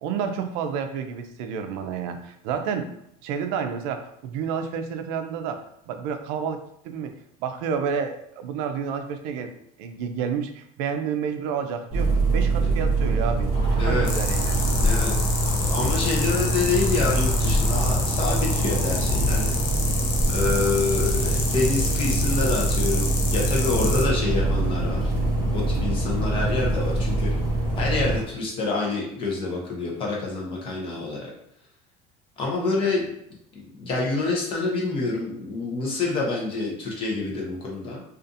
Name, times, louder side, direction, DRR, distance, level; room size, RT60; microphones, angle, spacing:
voice 1, 0.0-2.9 3.2-7.1 7.4-9.5 9.8-14.6, right 7 dB, 85° right, 7 dB, 0.4 m, -30 dB
sound 1, 11.9-28.2, right 1 dB, 30° right, 0.7 m, -24 dB
sound 2, 13.5-28.3, equal, 55° left, 1.0 m, -36 dB
voice 2, 13.8-14.1 14.8-15.3 15.7-19.5 20.3-25.1 25.5-27.3 27.8-31.2 32.4-33.0 33.8-38.0, left 3 dB, 30° left, -2 dB, 0.6 m, -27 dB
sound 3, 14.0-24.0, left 4 dB, 75° left, 0.6 m, -30 dB
2.6 x 2.4 x 2.5 m, 0.72 s
cardioid pair, 165°, 18 cm